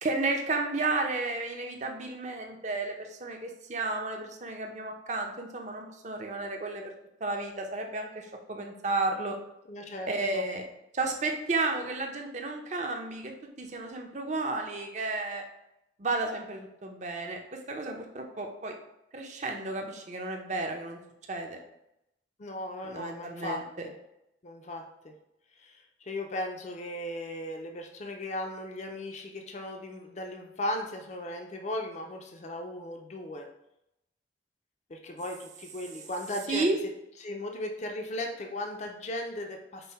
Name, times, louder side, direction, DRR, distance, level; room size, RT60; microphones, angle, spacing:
voice 1, 0.0-6.9 7.2-9.4 10.1-10.6 10.9-13.3 13.6-15.4 16.0-18.7 19.1-21.0 21.3-21.6 22.8-23.9 36.5-36.8, right 3 dB, 40° right, 3 dB, 0.6 m, -32 dB
voice 2, 9.7-10.4 22.4-23.9 24.4-25.1 25.6-33.5 34.9-36.8 37.2-39.9, left 1 dB, 40° left, 3 dB, 0.4 m, -37 dB
5.4 x 2.1 x 4.1 m, 0.83 s
head